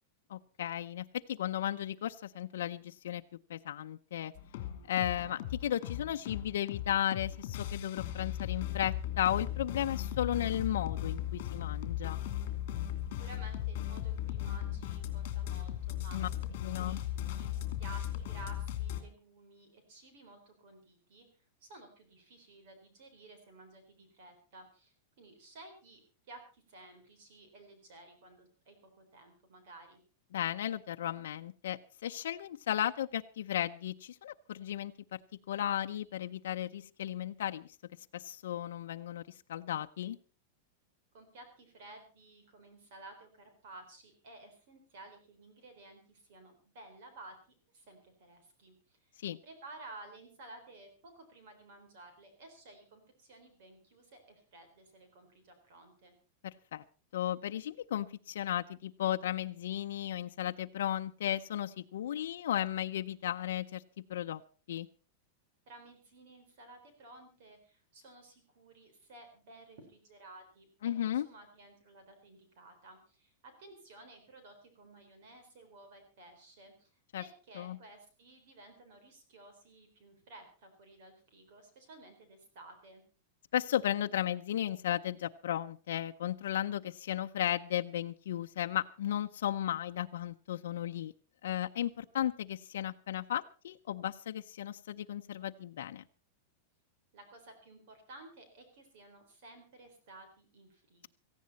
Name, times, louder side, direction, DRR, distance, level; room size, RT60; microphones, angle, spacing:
voice 1, 0.3-3.2 3.5-4.3 4.9-12.2 16.1-16.3 16.6-17.0 30.3-35.2 35.5-37.8 38.1-39.2 39.5-40.2 49.2-49.4 56.4-56.8 57.1-63.8 64.1-64.4 64.7-64.9 70.8-71.3 77.1-77.2 77.6-77.8 83.5-91.1 91.4-96.0, left 11 dB, 85° left, 6 dB, 0.6 m, -35 dB
sound 1, 4.3-19.0, left 12 dB, 45° left, 2.8 m, -37 dB
voice 2, 13.1-16.2 16.8-17.5 17.8-21.3 21.6-26.0 26.3-30.0 41.1-47.4 47.7-49.1 49.4-56.1 65.7-70.7 71.0-76.9 77.2-83.0 97.1-101.1, right 2 dB, 50° right, 7 dB, 3.9 m, -54 dB
18.0 x 15.0 x 4.1 m, 0.36 s
supercardioid pair, 175°, 0 cm